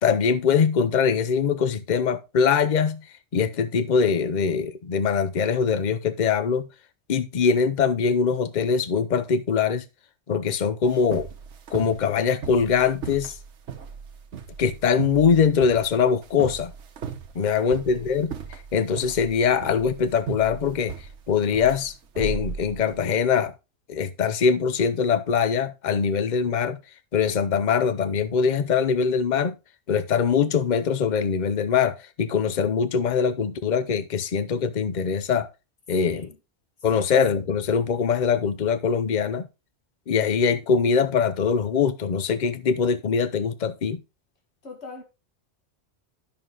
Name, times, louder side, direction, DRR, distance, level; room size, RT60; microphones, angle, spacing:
voice 1, 0.0-3.0 3.3-6.7 7.1-9.8 10.3-11.3 11.7-13.3 14.6-16.7 17.3-20.9 21.3-23.5 23.9-26.8 27.1-29.6 29.9-35.5 35.9-36.3 36.8-39.5 40.1-44.0, left 6 dB, 45° left, 0.8 m, -22 dB
sound 1, 10.8-23.1, right 7 dB, 75° right, 1.3 m, -36 dB
voice 2, 36.0-36.4 36.9-37.0 44.6-45.0, left 2 dB, 65° left, 2.4 m, -42 dB
10.5 x 6.2 x 3.8 m
omnidirectional pair, 1.2 m